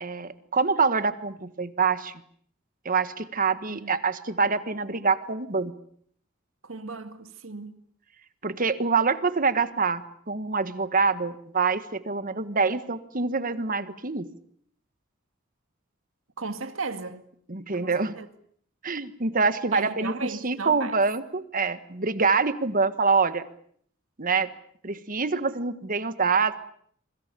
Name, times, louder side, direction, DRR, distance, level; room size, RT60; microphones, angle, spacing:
voice 1, 0.0-2.2 2.8-5.7 8.4-14.3 17.5-18.1 18.8-23.4 24.2-24.5 24.8-26.6, right 4 dB, 40° right, 1.5 m, -25 dB
voice 2, 6.6-7.8 16.4-17.3 17.7-18.3 19.7-21.0, right 3 dB, 75° right, 2.1 m, -36 dB
27.0 x 25.0 x 6.9 m
head